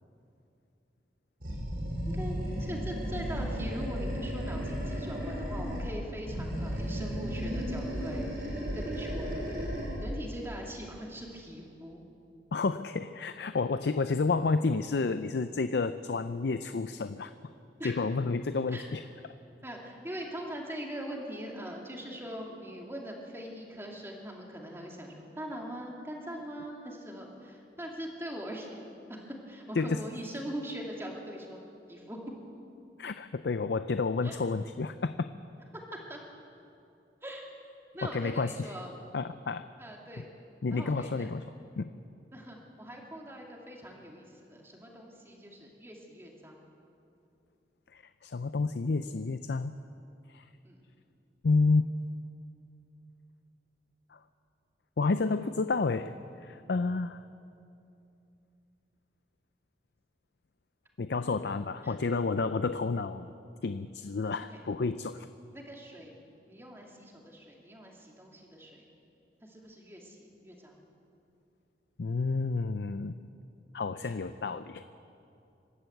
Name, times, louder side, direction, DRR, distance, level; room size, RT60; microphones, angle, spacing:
Animal, 1.4-5.9 6.2-10.1, equal, 55° right, 6.4 m, -34 dB
voice 1, 2.1-9.3 10.0-12.0 17.8-18.0 18.7-18.8 19.6-28.8 29.1-31.6 31.9-32.3 34.2-34.4 35.7-36.2 37.2-37.5 37.9-38.9 39.8-40.3 40.7-41.3 42.3-46.7 50.6-50.8 61.8-62.0 64.5-64.6 65.5-66.2 66.5-68.9 69.4-70.8 74.0-74.2, equal, 15° right, -1 dB, 2.6 m, -42 dB
voice 2, 12.5-17.3 17.8-19.0 29.8-30.0 33.0-35.1 38.1-38.5 39.1-39.7 40.6-41.4 41.8-41.9 47.9-49.7 50.3-50.4 51.4-51.9 54.1-54.2 55.0-57.2 61.0-63.3 63.6-65.3 72.0-73.2 73.7-74.8, left 4 dB, 75° left, 11 dB, 0.5 m, -30 dB
25.5 x 12.5 x 8.0 m, 2.7 s
head